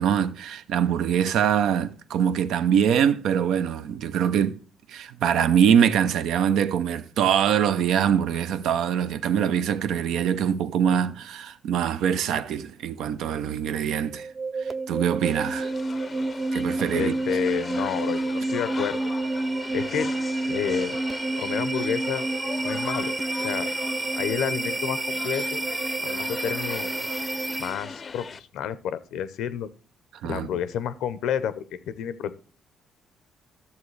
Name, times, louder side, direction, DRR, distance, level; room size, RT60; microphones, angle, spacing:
voice 1, 0.0-4.6 4.9-14.3 14.6-15.7 16.5-17.1 30.2-30.5, right 8 dB, 85° right, 0.5 m, -23 dB
sound 1, 14.0-27.9, right 2 dB, 20° right, 0.5 m, -29 dB
sound 2, 15.2-28.4, left 5 dB, 40° left, 0.5 m, -39 dB
voice 2, 16.9-19.1 19.7-20.1 20.5-21.0 21.4-22.3 22.6-23.1 23.4-23.7 24.2-25.6 26.0-26.9 27.6-28.3 28.5-29.7 30.2-32.4, left 9 dB, 85° left, 0.6 m, -30 dB
12.5 x 7.1 x 3.2 m
cardioid pair, 90°, 0 cm